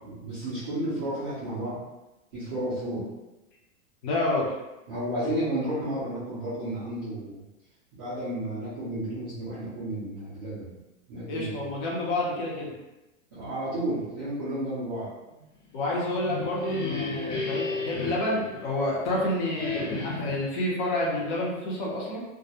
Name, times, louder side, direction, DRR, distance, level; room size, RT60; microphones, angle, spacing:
voice 1, 0.0-1.8 2.3-3.1 4.9-7.4 7.9-10.8 11.1-11.7 13.3-15.4, right 1 dB, 20° right, -14 dB, 0.3 m, -32 dB
voice 2, 4.0-4.5 11.3-12.7 15.7-22.2, left 1 dB, 40° left, -4 dB, 0.6 m, -29 dB
sound 1, 16.1-19.1 19.5-20.5, left 3 dB, 80° left, 1.1 m, -33 dB
2.3 x 2.0 x 2.7 m, 1.0 s
supercardioid pair, 160°, 38 cm